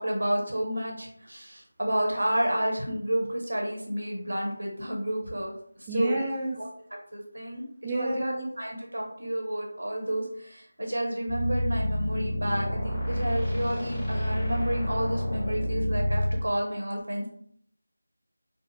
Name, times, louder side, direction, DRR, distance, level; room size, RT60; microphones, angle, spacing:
voice 1, 0.0-6.2 6.6-6.7 7.1-17.3, right 1 dB, 75° right, 0 dB, 1.0 m, -30 dB
voice 2, 5.9-6.6 7.8-8.5, right 1 dB, 10° right, -5 dB, 0.4 m, -30 dB
sound 1, 11.3-16.4, left 1 dB, 10° left, 0.9 m, -28 dB
3.7 x 2.1 x 2.7 m, 0.64 s
figure-of-eight pair, 170°, 0 cm